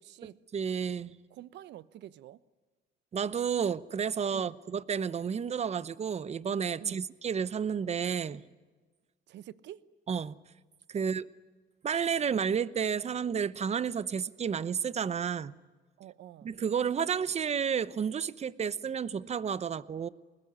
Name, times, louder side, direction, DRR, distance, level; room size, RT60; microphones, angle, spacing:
voice 1, 0.0-0.4 1.3-2.4 4.3-4.6 6.8-7.1 9.3-9.9 11.0-11.2 16.0-16.5, right 12 dB, 75° right, 1.0 m, -48 dB
voice 2, 0.5-1.1 3.1-8.4 10.1-10.3 10.9-11.2 11.8-15.5 16.4-20.1, right 7 dB, 35° right, 0.9 m, -31 dB
25.5 x 21.0 x 9.6 m
cardioid pair, 105°, 18 cm